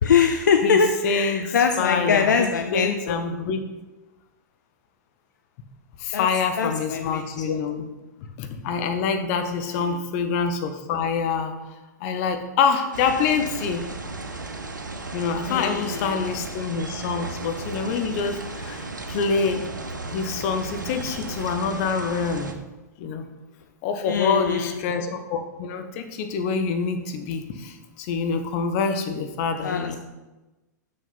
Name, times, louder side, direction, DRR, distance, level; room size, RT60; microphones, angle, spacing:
voice 1, 0.0-3.2 6.1-6.3 6.6-7.6 9.7-10.0 15.5-16.3 24.1-24.8 29.6-30.0, left 6 dB, 75° left, 5 dB, 0.6 m, -23 dB
voice 2, 1.0-2.5 2.7-3.6 6.0-7.8 8.4-11.5 12.0-13.8 15.1-19.6 20.1-22.5 23.0-23.2 23.8-30.0, left 5 dB, 45° left, 7 dB, 1.0 m, -26 dB
sound 1, 12.9-22.5, right 3 dB, 85° right, 0.8 m, -35 dB
6.5 x 6.3 x 4.2 m, 1.1 s
figure-of-eight pair, 100°, 10 cm